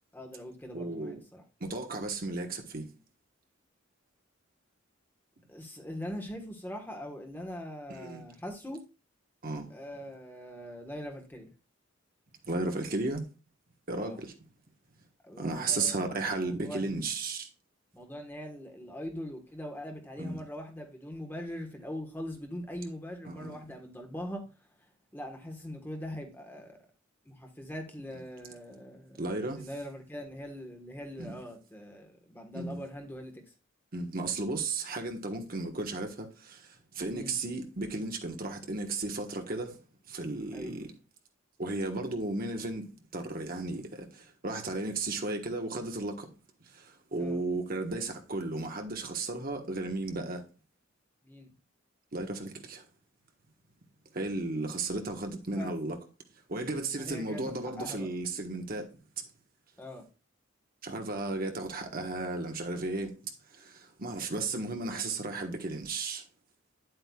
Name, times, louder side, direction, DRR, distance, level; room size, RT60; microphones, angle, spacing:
voice 1, 0.1-1.4 5.5-8.8 9.7-11.5 13.9-14.2 15.2-17.0 17.9-24.5 25.1-26.8 27.2-33.4 37.1-37.3 40.5-40.7 47.2-47.4 51.2-51.5 55.6-55.7 57.0-58.1 59.8-60.1, equal, 10° left, 1.3 m, -42 dB
voice 2, 0.7-1.2 1.6-2.9 7.9-8.3 9.4-9.7 12.4-13.2 13.9-14.3 15.4-17.5 20.2-20.4 23.2-23.6 29.2-29.7 31.2-31.4 32.5-32.8 33.9-40.9 41.6-46.3 46.6-50.4 52.1-52.8 54.1-56.0 56.5-58.9 59.2-59.3 60.8-66.2, right 2 dB, 45° right, 1.3 m, -34 dB
10.0 x 7.9 x 2.4 m
head